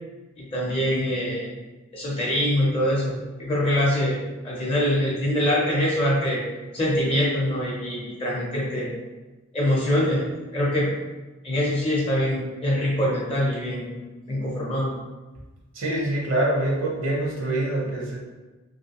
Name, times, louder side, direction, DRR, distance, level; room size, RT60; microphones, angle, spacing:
voice 1, 0.4-1.5 1.9-4.2 4.4-6.4 6.7-8.9 9.5-10.9 11.4-13.9 14.3-14.9, equal, 25° left, -5 dB, 0.6 m, -24 dB
voice 2, 15.7-18.2, right 1 dB, 65° right, -3 dB, 0.8 m, -25 dB
3.1 x 2.7 x 2.9 m, 1.2 s
head